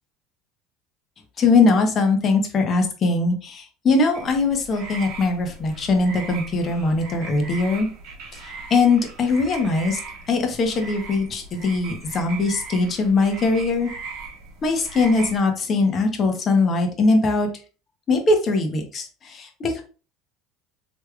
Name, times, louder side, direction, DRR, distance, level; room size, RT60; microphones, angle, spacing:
voice 1, 1.4-7.9 8.7-10.0 10.3-13.9 14.6-17.5 18.1-19.8, left 3 dB, 40° left, 4 dB, 0.9 m, -21 dB
sound 1, 4.1-15.4, right 4 dB, 70° right, 1.4 m, -39 dB
3.3 x 3.1 x 2.3 m, 0.37 s
supercardioid pair, 105°, 0 cm